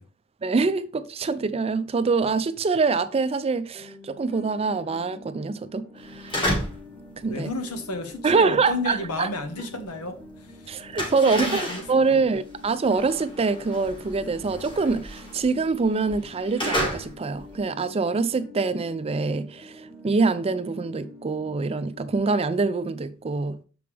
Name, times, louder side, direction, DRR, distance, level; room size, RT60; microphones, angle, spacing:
voice 1, 0.4-6.5 7.2-7.5 8.2-9.3 10.7-23.6, right 4 dB, 25° right, 0.4 m, -25 dB
sound 1, 3.7-22.2, left 3 dB, 5° left, 1.0 m, -47 dB
sound 2, 6.1-6.9 7.2-10.1 10.4-17.6, equal, 20° left, 1.9 m, -32 dB
voice 2, 7.3-11.1 11.4-12.2, left 2 dB, 85° left, 1.2 m, -32 dB
6.8 x 5.1 x 3.4 m
head